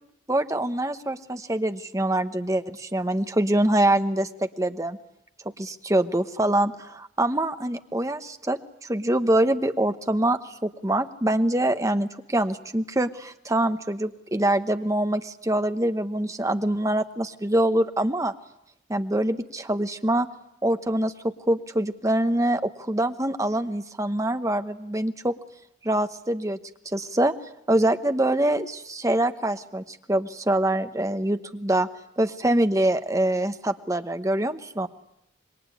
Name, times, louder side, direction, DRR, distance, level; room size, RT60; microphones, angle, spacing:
voice 1, 0.3-5.0 5.6-18.3 18.9-20.3 20.6-25.3 25.8-26.6 26.8-27.3 27.7-31.9 32.2-34.9, right 1 dB, 15° right, 9 dB, 1.0 m, -24 dB
26.5 x 21.5 x 9.9 m, 0.78 s
head